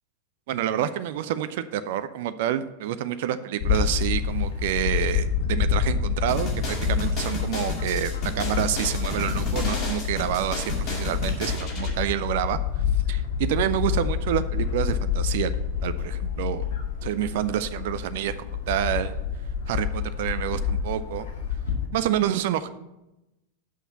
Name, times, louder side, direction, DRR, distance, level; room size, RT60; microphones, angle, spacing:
voice 1, 0.5-12.6 13.1-15.5 15.8-16.6 17.0-19.1 19.7-21.3 21.9-22.7, right 11 dB, 50° right, 12 dB, 0.4 m, -28 dB
Bird / Wind, 3.6-21.9, left 7 dB, 60° left, 1.2 m, -28 dB
sound 1, 6.3-11.9, left 2 dB, 35° left, 2.2 m, -33 dB
6.3 x 5.6 x 6.9 m, 0.96 s
figure-of-eight pair, 90°, 0 cm